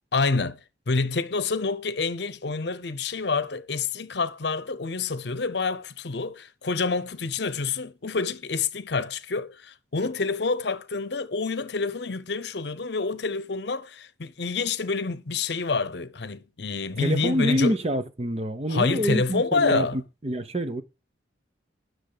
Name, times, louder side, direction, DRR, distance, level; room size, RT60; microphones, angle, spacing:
voice 1, 0.1-0.6 0.9-17.8 18.7-20.0, left 4 dB, 60° left, 0.8 m, -27 dB
voice 2, 17.0-20.8, equal, 35° right, 0.8 m, -26 dB
10.0 x 6.3 x 6.6 m
head